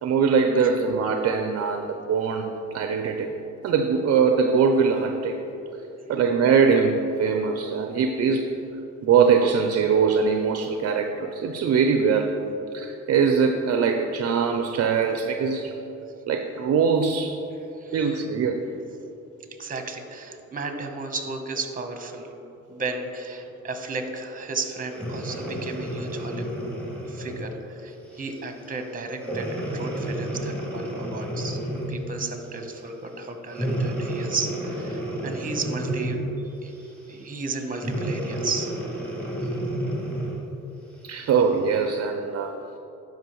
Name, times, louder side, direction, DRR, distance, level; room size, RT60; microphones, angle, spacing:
voice 1, 0.0-3.3 3.6-5.4 6.1-8.6 9.0-12.4 12.7-15.7 16.3-17.4 17.9-18.7 41.0-42.5, right 5 dB, 55° right, 5 dB, 0.5 m, -22 dB
voice 2, 19.6-22.3 22.7-26.6 27.1-31.6 31.9-36.2 36.6-36.7 37.1-38.7, right 3 dB, 25° right, 5 dB, 0.9 m, -33 dB
Breathing, 24.9-27.5 28.1-28.4 29.2-32.1 33.5-36.4 37.7-40.5 41.1-41.2, right 1 dB, 5° left, 1.8 m, -30 dB
12.5 x 5.1 x 3.1 m, 2.9 s
cardioid pair, 90°, 30 cm